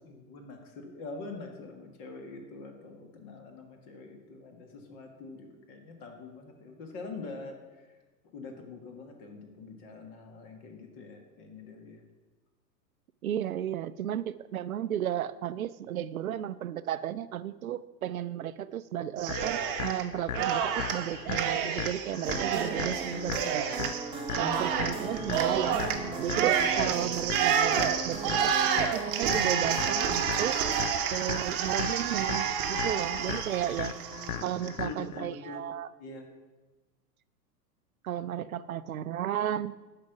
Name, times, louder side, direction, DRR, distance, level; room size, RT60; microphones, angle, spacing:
voice 1, 0.0-8.0 8.2-12.0 24.4-24.6 33.7-35.6 36.0-36.3, left 3 dB, 35° left, 4 dB, 1.7 m, -44 dB
voice 2, 13.2-23.9 24.4-25.8 26.2-30.6 31.1-33.9 34.4-35.9 38.0-39.7, right 11 dB, 60° right, 15 dB, 0.5 m, -34 dB
Cheering, 19.2-20.0 20.3-34.7, right 8 dB, 35° right, 1.0 m, -29 dB
sound 1, 19.3-35.3, left 10 dB, 55° left, 0.5 m, -39 dB
sound 2, 22.2-30.9, right 4 dB, 10° right, 0.8 m, -38 dB
11.0 x 5.8 x 5.9 m, 1.2 s
figure-of-eight pair, 100°, 50 cm